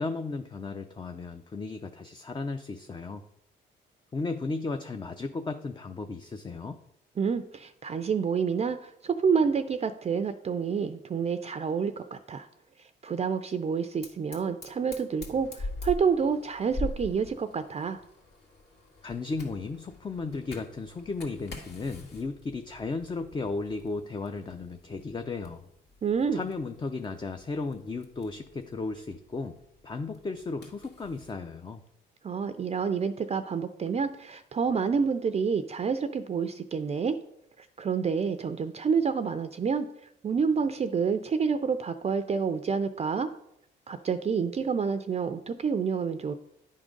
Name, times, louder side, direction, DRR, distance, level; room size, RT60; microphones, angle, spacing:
voice 1, 0.0-3.3 4.1-6.8 19.0-25.7 26.3-29.6 29.8-31.8, left 3 dB, 25° left, 7 dB, 0.5 m, -35 dB
voice 2, 7.2-12.5 13.0-18.0 26.0-26.4 32.2-37.2 37.6-39.9 40.2-43.3 43.9-46.3, right 6 dB, 35° right, 10 dB, 0.4 m, -28 dB
Fire, 14.0-31.4, left 2 dB, 60° left, 2.1 m, -44 dB
10.5 x 3.7 x 5.2 m, 0.79 s
cardioid pair, 90°, 20 cm